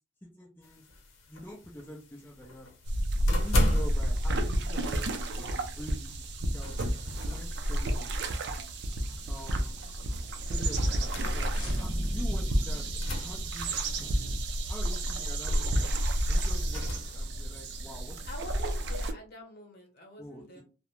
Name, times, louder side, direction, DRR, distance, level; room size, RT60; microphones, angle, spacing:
voice 1, 0.4-0.8 1.3-2.7 3.2-6.7 7.2-8.6 9.3-9.8 10.5-14.2 14.7-15.9 16.3-18.2 20.2-20.6, equal, 10° left, -2 dB, 0.4 m, -46 dB
sound 1, 0.6-17.2, left 1 dB, 75° left, 0.7 m, -37 dB
sound 2, 2.9-19.1, right 1 dB, 55° right, 0.4 m, -31 dB
sound 3, 11.0-14.3, equal, 25° left, 0.9 m, -35 dB
voice 2, 18.2-20.6, left 1 dB, 50° left, 1 dB, 1.0 m, -45 dB
2.4 x 2.1 x 3.0 m, 0.33 s
head